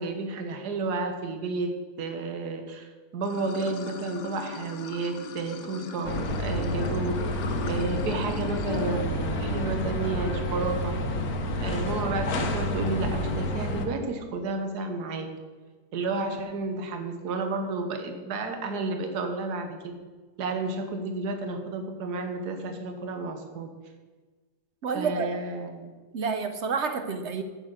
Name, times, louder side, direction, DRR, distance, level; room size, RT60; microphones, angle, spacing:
voice 1, 0.0-7.2 7.7-11.0 11.6-15.3 15.9-19.9 20.4-23.7 24.9-25.9, right 3 dB, 75° right, 6 dB, 1.6 m, -31 dB
Water / Sink (filling or washing), 3.2-8.9, left 4 dB, 80° left, 1.5 m, -39 dB
sound 1, 6.0-13.9, left 1 dB, 65° left, 1.5 m, -29 dB
voice 2, 24.8-25.3 26.1-27.4, right 5 dB, 55° right, 8 dB, 0.9 m, -29 dB
8.8 x 6.7 x 7.8 m, 1.3 s
omnidirectional pair, 1.7 m